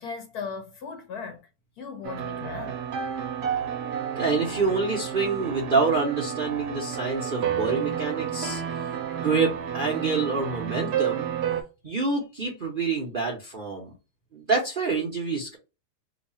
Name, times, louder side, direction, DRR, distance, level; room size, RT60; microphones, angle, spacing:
voice 1, 0.0-1.5 1.8-2.8, left 5 dB, 65° left, 1.4 m, -37 dB
sound 1, 2.0-11.6, right 9 dB, 70° right, 1.1 m, -31 dB
voice 2, 4.1-8.6 9.2-11.3 11.8-13.9 14.3-15.6, right 4 dB, 45° right, 0.7 m, -27 dB
3.1 x 2.3 x 4.0 m
omnidirectional pair, 1.8 m